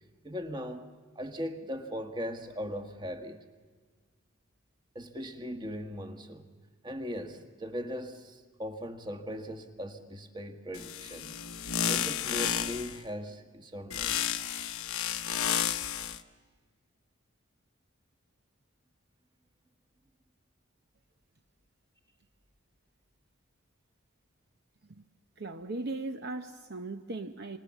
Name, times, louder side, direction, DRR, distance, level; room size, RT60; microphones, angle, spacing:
voice 1, 0.2-0.9 1.1-3.4 4.9-6.5 6.8-11.4 11.9-14.2, equal, 20° right, 1.5 m, -39 dB
sound 1, 10.7-13.0 13.9-16.2, left 9 dB, 85° left, 1.0 m, -32 dB
voice 2, 25.4-27.6, right 2 dB, 50° right, 0.8 m, -38 dB
27.0 x 26.0 x 7.2 m
head